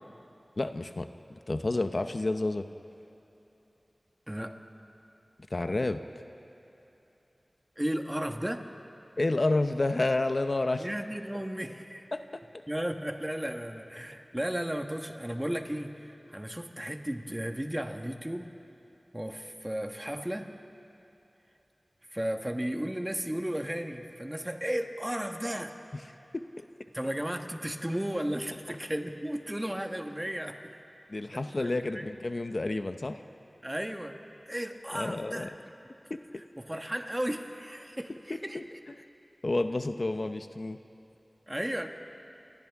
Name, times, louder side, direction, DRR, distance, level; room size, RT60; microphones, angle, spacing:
voice 1, 0.6-2.7 5.5-6.0 9.2-10.9 12.1-12.4 26.3-26.6 31.1-33.2 34.9-35.5 36.1-36.2 38.3-38.6 39.4-40.8, left 2 dB, 60° left, 8 dB, 0.7 m, -30 dB
voice 2, 4.3-4.6 7.8-8.7 10.8-12.1 12.7-18.5 19.1-20.5 22.1-25.8 26.9-30.8 31.3-32.1 33.6-34.2 34.5-35.5 36.6-38.8 41.5-41.9, equal, 15° right, 5 dB, 1.4 m, -34 dB
29.0 x 25.0 x 3.6 m, 2.9 s
wide cardioid pair, 50°, 0 cm